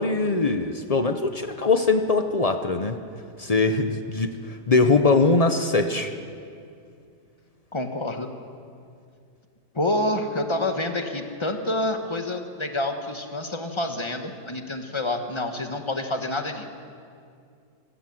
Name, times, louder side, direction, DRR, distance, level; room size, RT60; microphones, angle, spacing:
voice 1, 0.0-3.0 3.4-6.1, left 3 dB, 50° left, 8 dB, 0.4 m, -22 dB
voice 2, 7.7-8.3 9.7-16.6, left 1 dB, 20° left, 5 dB, 1.2 m, -28 dB
25.5 x 13.5 x 7.7 m, 2.4 s
omnidirectional pair, 1.9 m